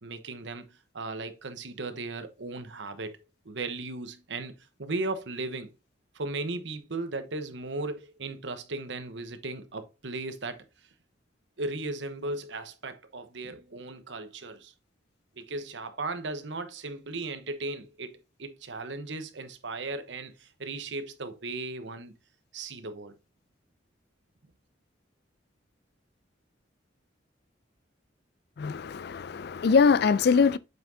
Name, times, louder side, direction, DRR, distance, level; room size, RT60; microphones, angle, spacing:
voice 1, 0.0-0.7 0.9-3.2 3.4-4.5 4.8-5.7 6.1-10.6 11.6-14.7 15.4-22.1 22.5-23.1, right 3 dB, 70° right, 1.0 m, -36 dB
voice 2, 28.6-30.6, left 5 dB, 60° left, 0.4 m, -22 dB
7.8 x 5.7 x 2.7 m
head